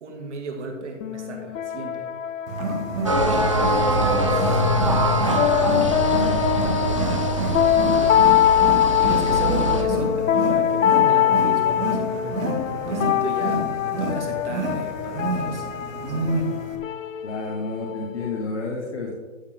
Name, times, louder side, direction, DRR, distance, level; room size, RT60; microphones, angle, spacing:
voice 1, 0.0-2.1 3.5-4.6 5.3-6.4 9.0-16.2, right 3 dB, 60° right, 1 dB, 2.3 m, -35 dB
sound 1, 1.0-18.5, left 11 dB, 75° left, 0.6 m, -23 dB
Wild animals, 2.5-16.8, right 1 dB, 80° right, 1.9 m, -28 dB
sound 2, 3.0-9.8, right 2 dB, 25° right, 0.5 m, -24 dB
voice 2, 3.5-4.7 8.9-9.7 17.2-19.1, left 3 dB, 60° left, -2 dB, 1.7 m, -32 dB
14.0 x 4.9 x 3.6 m, 1.2 s
hypercardioid pair, 180°, 39 cm